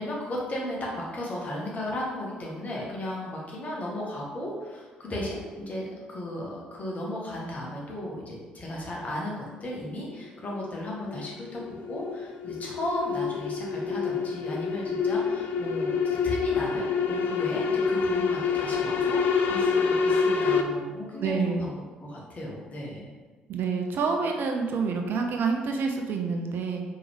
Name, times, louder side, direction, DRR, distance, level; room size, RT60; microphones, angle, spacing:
voice 1, 0.0-19.2 19.5-23.1, left 1 dB, 40° left, -3 dB, 1.5 m, -35 dB
sound 1, 10.1-20.6, left 5 dB, 55° left, 0.4 m, -27 dB
voice 2, 21.2-21.6 23.5-26.8, right 5 dB, 55° right, 3 dB, 0.5 m, -27 dB
4.5 x 3.5 x 3.4 m, 1.4 s
hypercardioid pair, 45°, 4 cm